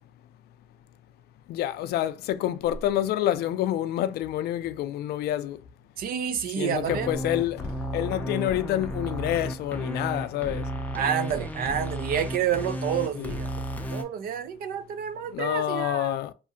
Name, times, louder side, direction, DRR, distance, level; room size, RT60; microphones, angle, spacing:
voice 1, 1.5-5.6 6.6-10.7 13.1-13.3 15.3-16.3, left 12 dB, 70° left, 0.4 m, -28 dB
voice 2, 6.0-7.1 10.9-13.5 13.9-16.2, right 8 dB, 60° right, 0.4 m, -29 dB
sound 1, 6.7-14.0, equal, 10° left, 0.5 m, -33 dB
2.7 x 2.5 x 2.5 m
cardioid pair, 110°, 17 cm